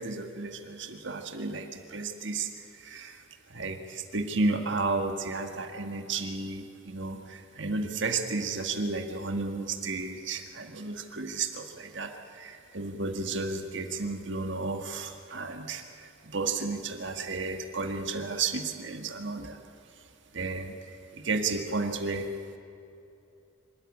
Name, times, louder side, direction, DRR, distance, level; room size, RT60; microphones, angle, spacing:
voice 1, 0.0-2.5 2.8-3.2 3.5-19.6 20.3-20.7 21.1-22.3, right 3 dB, 65° right, 5 dB, 1.9 m, -33 dB
25.5 x 14.0 x 9.9 m, 2.7 s
head